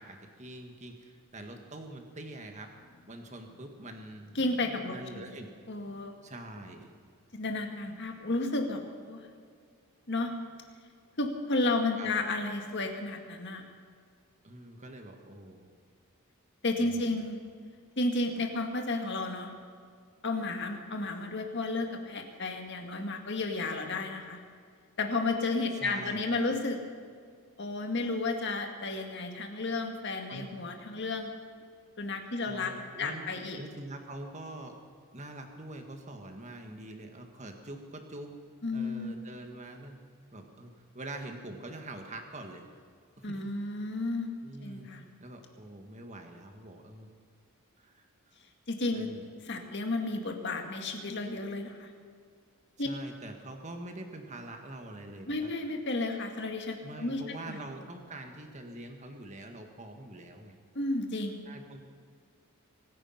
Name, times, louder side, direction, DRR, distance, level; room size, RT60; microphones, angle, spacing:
voice 1, 0.0-2.7 3.1-4.4 4.9-5.5 6.2-6.9 12.0-12.1 14.4-15.7 16.8-17.2 25.8-26.4 30.3-30.7 32.5-34.8 35.1-38.3 38.7-40.0 40.3-42.6 43.2-43.3 44.4-47.1 47.8-48.1 48.9-49.3 52.8-55.5 56.8-60.6 61.4-61.8, right 1 dB, 30° right, 4 dB, 1.7 m, -44 dB
voice 2, 4.4-5.3 5.7-6.1 7.3-9.3 10.1-10.4 11.2-13.7 16.6-17.4 18.0-19.5 20.2-24.4 25.0-26.8 27.6-31.3 32.0-32.7 33.0-33.6 38.6-39.1 43.2-44.3 44.6-45.1 48.7-49.1 49.4-51.9 52.8-52.9 55.3-57.2 57.5-57.6 60.8-61.4, left 2 dB, 50° left, 4 dB, 1.9 m, -32 dB
24.0 x 9.9 x 5.9 m, 2.1 s
head